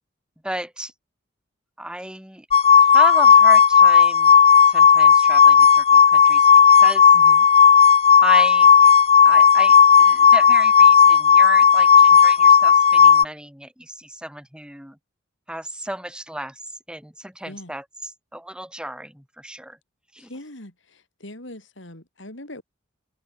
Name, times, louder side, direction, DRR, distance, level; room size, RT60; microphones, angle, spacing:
voice 1, 0.4-0.9 1.8-2.5 2.8-4.3 4.7-6.5 6.8-7.1 8.2-8.9 9.2-15.0 15.5-16.6 16.9-19.8 20.1-20.3, right 1 dB, 5° right, 3.8 m, -33 dB
sound 1, 2.5-13.3, left 7 dB, 30° left, 0.6 m, -13 dB
voice 2, 7.1-7.5 17.4-17.7 20.2-22.6, left 1 dB, 65° left, 5.1 m, -41 dB
head